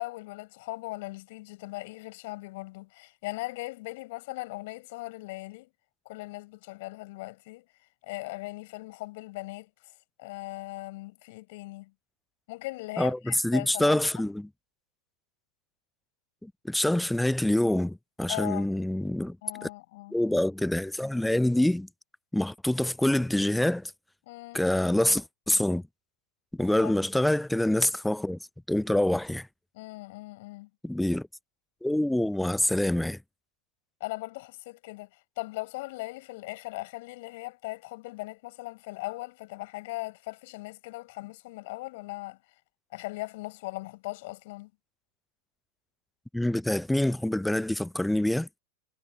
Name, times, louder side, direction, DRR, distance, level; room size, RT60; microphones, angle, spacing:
voice 1, 0.0-5.7 6.0-7.6 8.0-9.7 10.2-11.9 12.5-14.2 18.3-18.7 19.4-20.2 24.3-24.6 26.8-26.9 29.7-30.7 34.0-35.1 35.4-42.4 42.9-44.7, left 21 dB, 50° left, 6.6 m, -39 dB
voice 2, 13.0-14.5 16.4-19.4 19.6-19.7 20.1-21.9 22.3-23.9 24.5-25.8 26.5-28.4 28.7-29.5 30.8-31.3 31.8-33.2 46.3-48.5, left 1 dB, 5° left, 0.6 m, -26 dB
figure-of-eight pair, 90°, 0 cm